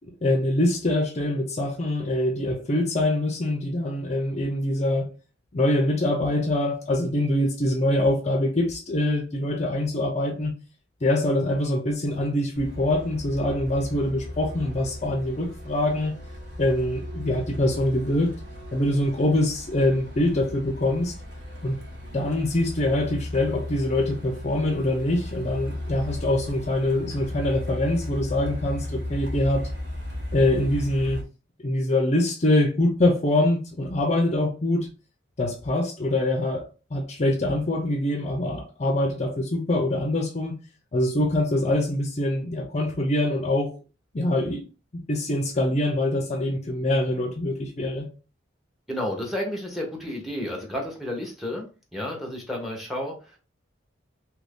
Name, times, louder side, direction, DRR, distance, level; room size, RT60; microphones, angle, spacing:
voice 1, 0.2-5.1 5.5-10.5 11.0-16.1 16.6-18.3 18.7-21.1 21.6-21.8 22.1-29.7 30.3-31.2 31.6-34.9 35.4-40.6 40.9-43.7 44.1-44.6 44.9-48.1, left 1 dB, 35° left, 0.5 m, -24 dB
Truck, 12.5-31.2, left 1 dB, 60° right, 1.2 m, -36 dB
voice 2, 48.9-51.7 51.9-53.4, left 1 dB, ahead, 0.8 m, -31 dB
2.9 x 2.6 x 3.5 m
head